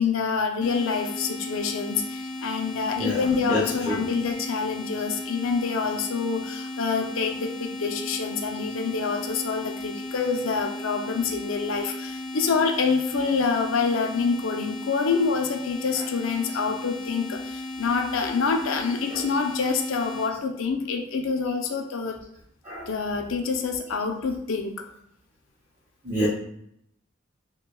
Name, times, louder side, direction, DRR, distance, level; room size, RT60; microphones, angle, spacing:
voice 1, 0.0-22.2 22.9-24.9, left 5 dB, 75° left, 4 dB, 0.5 m, -26 dB
sound 1, 0.6-20.3, left 1 dB, 40° left, 0.8 m, -36 dB
voice 2, 3.0-3.2 3.5-3.6 3.9-4.0 22.6-22.9 26.0-26.3, equal, 15° right, -9 dB, 0.8 m, -26 dB
5.7 x 2.2 x 2.3 m, 0.73 s
head